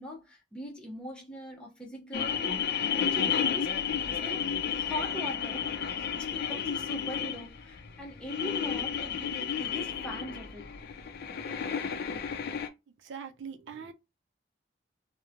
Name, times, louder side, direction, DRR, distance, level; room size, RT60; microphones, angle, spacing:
voice 1, 0.0-5.8 6.2-10.7, left 1 dB, 5° left, 0.6 m, -41 dB
sound 1, 2.1-12.7, left 7 dB, 55° left, 0.4 m, -32 dB
voice 2, 13.0-13.9, right 6 dB, 70° right, 0.4 m, -41 dB
2.9 x 2.0 x 2.5 m
head